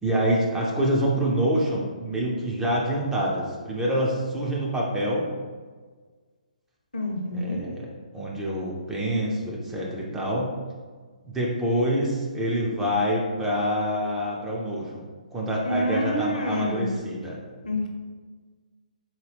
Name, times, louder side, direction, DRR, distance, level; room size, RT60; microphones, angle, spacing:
voice 1, 0.0-5.3 7.3-7.9 8.1-10.5 11.2-17.4, equal, 10° right, -4 dB, 0.5 m, -26 dB
voice 2, 6.9-7.6 15.6-16.9 17.6-17.9, left 1 dB, 70° left, 1 dB, 0.8 m, -27 dB
4.1 x 2.2 x 3.4 m, 1.5 s
figure-of-eight pair, 135°, 4 cm